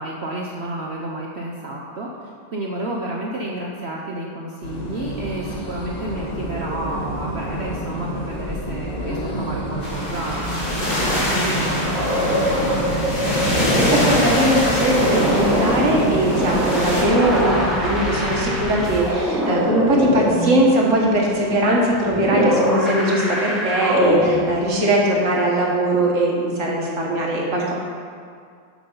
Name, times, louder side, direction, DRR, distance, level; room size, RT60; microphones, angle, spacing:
voice 1, 0.0-2.1 2.5-13.1, right 1 dB, 80° right, -2 dB, 0.5 m, -31 dB
sound 1, 4.6-19.0, equal, 30° left, 0.9 m, -29 dB
sound 2, 9.8-17.0, left 1 dB, 85° left, 2.7 m, -24 dB
sound 3, 10.2-11.1 11.6-24.8, equal, ahead, 1.7 m, -23 dB
voice 2, 13.4-27.7, right 1 dB, 45° right, -2 dB, 1.4 m, -20 dB
8.1 x 6.1 x 5.4 m, 2.2 s
omnidirectional pair, 2.1 m